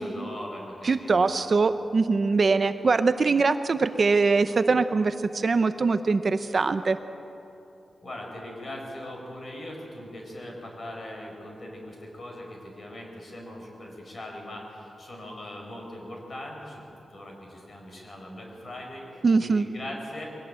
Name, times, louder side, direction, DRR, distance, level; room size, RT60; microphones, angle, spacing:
voice 1, 0.0-1.5 8.0-16.8 17.1-20.3, left 1 dB, 35° left, 1 dB, 4.8 m, -40 dB
voice 2, 0.8-7.0 19.2-19.7, right 4 dB, 40° right, 11 dB, 0.6 m, -22 dB
22.5 x 17.5 x 8.8 m, 2.8 s
wide cardioid pair, 165°, 0 cm